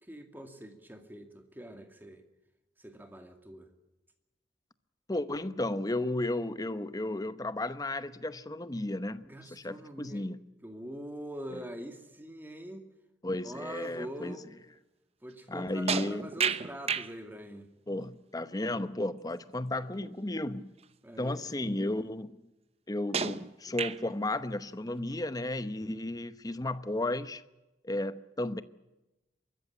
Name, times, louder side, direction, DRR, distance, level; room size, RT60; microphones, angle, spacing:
voice 1, 0.0-2.2 2.8-3.7 9.2-10.3 10.6-12.9 13.4-14.5 15.2-17.7 19.7-20.1 21.0-22.1 26.0-26.4, right 1 dB, 10° right, 6 dB, 2.3 m, -44 dB
voice 2, 5.1-9.2 9.5-10.4 13.2-14.4 15.5-16.3 17.9-20.7 21.2-22.4 22.9-27.4 27.8-28.6, left 1 dB, 20° left, 13 dB, 0.9 m, -33 dB
sound 1, 15.9-17.1 20.0-20.1 20.8-20.9 23.1-24.2, right 6 dB, 35° right, 0.8 m, -32 dB
24.0 x 14.0 x 9.8 m, 1.0 s
head